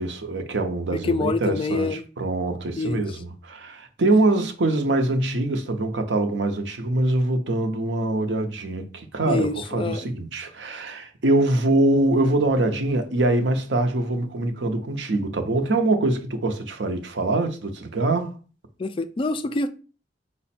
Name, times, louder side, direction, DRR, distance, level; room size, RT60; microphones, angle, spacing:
voice 1, 0.0-18.3, right 2 dB, 75° right, 0.7 m, -24 dB
voice 2, 0.9-2.0 2.8-3.1 9.3-10.1 18.8-19.7, left 3 dB, 30° left, 0.3 m, -26 dB
5.1 x 2.1 x 4.2 m
head